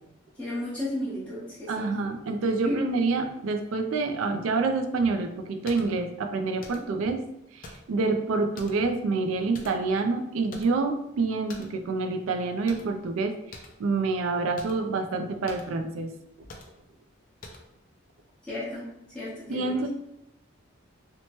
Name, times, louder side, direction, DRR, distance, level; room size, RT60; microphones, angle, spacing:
voice 1, 0.4-1.9 2.6-2.8 18.4-18.9 19.1-19.9, left 1 dB, 5° left, -10 dB, 0.9 m, -33 dB
voice 2, 1.7-7.2 7.5-16.1 19.5-19.9, right 3 dB, 80° right, 7 dB, 0.3 m, -27 dB
sound 1, 5.7-5.9 6.6-7.0 7.6-8.0 8.6-8.9 9.5-10.0 10.5-10.9 11.5-11.8 12.7-13.0 13.5-13.8 14.6-14.8 15.5-15.7 16.5-16.8 17.4-17.7, left 2 dB, 40° left, 0.3 m, -45 dB
2.8 x 2.1 x 2.9 m, 0.85 s
head